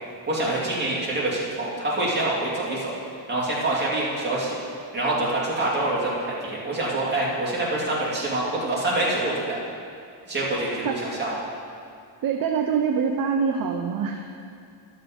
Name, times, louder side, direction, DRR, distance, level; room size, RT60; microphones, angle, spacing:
voice 1, 0.3-2.9 3.3-4.6 4.9-9.6 10.3-11.3, right 2 dB, 20° right, -7 dB, 2.5 m, -26 dB
voice 2, 12.2-14.5, right 6 dB, 45° right, 3 dB, 0.6 m, -25 dB
12.5 x 6.5 x 5.2 m, 2.4 s
cardioid pair, 155°, 48 cm